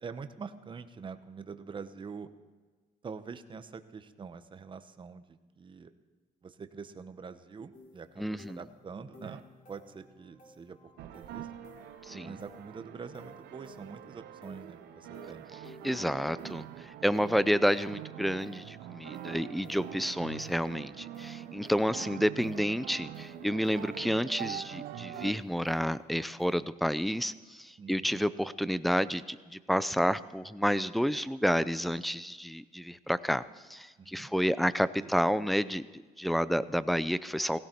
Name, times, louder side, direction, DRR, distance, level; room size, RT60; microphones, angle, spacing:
voice 1, 0.0-2.3 3.0-5.9 6.4-9.4 9.7-11.5 12.1-15.5 15.9-16.2 16.4-16.9 27.8-28.2 34.0-34.3 35.0-35.1, right 5 dB, 30° right, 10 dB, 1.0 m, -45 dB
sound 1, 7.7-26.5, left 3 dB, 50° left, 3.9 m, -56 dB
voice 2, 8.2-8.6 12.1-12.4 15.8-16.6 17.0-33.4 33.7-37.6, equal, ahead, 16 dB, 0.5 m, -30 dB
sound 2, 9.2-9.4 11.0-25.3, right 12 dB, 80° right, 0.9 m, -44 dB
17.0 x 16.5 x 4.6 m, 1.3 s
cardioid pair, 110°, 17 cm